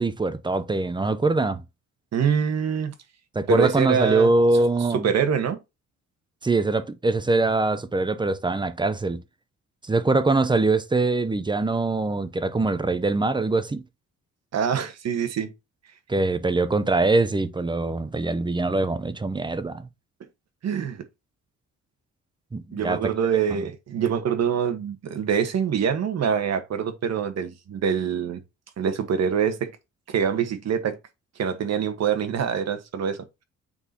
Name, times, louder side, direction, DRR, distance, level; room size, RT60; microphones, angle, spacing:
voice 1, 0.0-1.6 3.3-5.1 6.4-9.2 9.8-13.8 16.1-19.9 22.5-23.1 23.6-23.7, right 3 dB, 15° right, 0.7 m, -23 dB
voice 2, 2.1-2.9 3.5-4.3 4.9-5.6 14.5-15.5 20.6-21.0 22.7-28.4 28.8-29.7 30.1-31.0 31.4-33.2, right 7 dB, 60° right, 1.4 m, -25 dB
8.7 x 4.0 x 2.9 m
cardioid pair, 90°, 30 cm